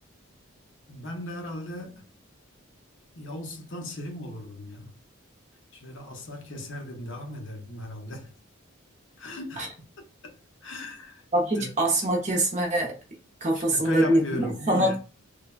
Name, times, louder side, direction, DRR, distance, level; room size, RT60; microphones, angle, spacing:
voice 1, 0.9-2.1 3.2-4.9 5.7-8.3 9.2-9.7 10.2-11.3 11.5-11.7 13.5-15.0, left 1 dB, 60° left, 0.7 m, -37 dB
voice 2, 11.3-13.0 13.4-14.9, right 1 dB, 35° right, 0.7 m, -24 dB
3.2 x 2.2 x 2.3 m
head